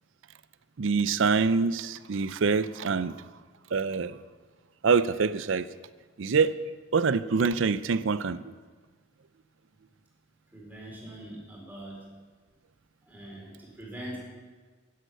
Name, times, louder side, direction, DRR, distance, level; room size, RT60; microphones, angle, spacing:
voice 1, 0.8-3.2 3.7-4.2 4.8-5.7 6.2-6.5 6.9-8.5, right 5 dB, 65° right, 15 dB, 0.5 m, -25 dB
voice 2, 10.5-12.0 13.1-14.3, right 1 dB, 10° right, -4 dB, 4.1 m, -42 dB
11.0 x 10.5 x 6.6 m, 1.4 s
head